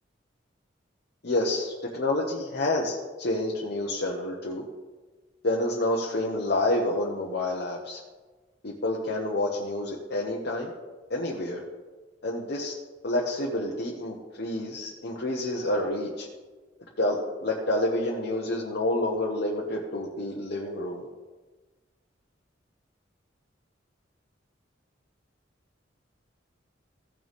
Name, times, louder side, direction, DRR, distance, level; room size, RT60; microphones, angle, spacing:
voice 1, 1.2-4.6 5.4-8.0 8.6-10.7 11.1-11.6 12.2-12.7 13.0-16.3 17.0-21.0, left 1 dB, 60° left, -2 dB, 1.1 m, -28 dB
15.5 x 6.5 x 3.6 m, 1.3 s
head